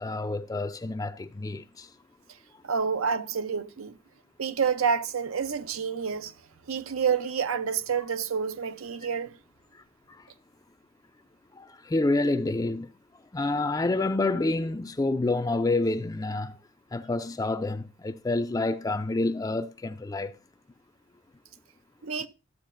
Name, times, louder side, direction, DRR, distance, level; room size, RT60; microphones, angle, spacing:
voice 1, 0.0-1.9 9.7-9.8 10.1-10.3 11.5-12.9 13.3-16.6 16.9-20.4, left 2 dB, 15° left, 0.3 m, -28 dB
voice 2, 2.6-4.0 4.4-6.3 6.7-9.3 22.0-22.3, right 6 dB, 85° right, 0.7 m, -28 dB
12.0 x 8.3 x 2.5 m
head